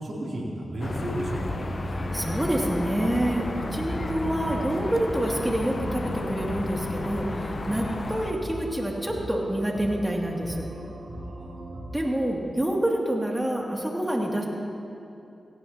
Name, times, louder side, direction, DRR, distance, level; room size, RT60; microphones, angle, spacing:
voice 1, 0.0-1.6 11.2-11.7, right 1 dB, 65° right, -4 dB, 3.2 m, -33 dB
sound 1, 0.8-8.3, left 2 dB, 55° left, 0.9 m, -33 dB
sound 2, 1.1-12.0, right 1 dB, 85° right, 2.6 m, -40 dB
voice 2, 2.1-10.7 11.9-14.5, right 1 dB, 15° right, -1 dB, 2.6 m, -27 dB
17.0 x 16.5 x 2.9 m, 2.7 s
cardioid pair, 45°, 0 cm